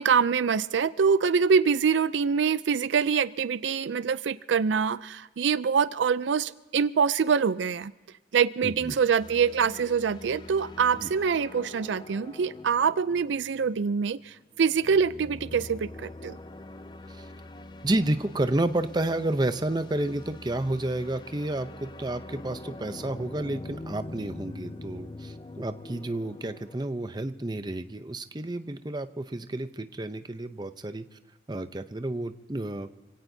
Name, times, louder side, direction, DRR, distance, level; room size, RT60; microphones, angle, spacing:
voice 1, 0.0-7.9 8.3-16.4, right 6 dB, 75° right, 16 dB, 0.4 m, -25 dB
voice 2, 8.6-9.0 10.9-11.1 17.1-17.3 17.8-31.0 31.5-32.9, right 1 dB, 20° right, 10 dB, 0.6 m, -30 dB
sound 1, 9.2-26.9, left 2 dB, 25° left, 0.5 m, -44 dB
27.5 x 17.0 x 2.7 m, 1.1 s
head